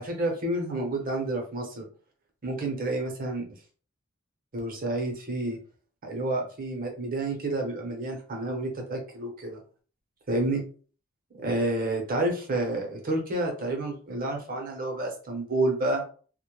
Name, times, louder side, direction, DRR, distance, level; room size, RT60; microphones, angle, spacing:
voice 1, 0.0-1.9 2.4-3.5 4.5-5.6 6.0-9.6 10.3-10.6 11.4-16.0, right 2 dB, 45° right, 1 dB, 0.7 m, -29 dB
2.1 x 2.0 x 3.0 m, 0.40 s
head